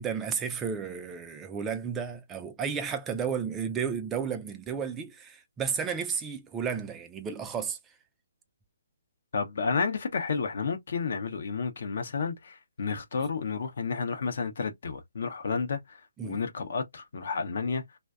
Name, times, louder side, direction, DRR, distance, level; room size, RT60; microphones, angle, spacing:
voice 1, 0.0-7.8 16.2-16.4, right 6 dB, 15° right, 0.3 m, -33 dB
voice 2, 9.3-16.0 16.2-17.8, left 5 dB, 60° left, 0.6 m, -31 dB
2.5 x 2.1 x 2.3 m
figure-of-eight pair, 145°, 0 cm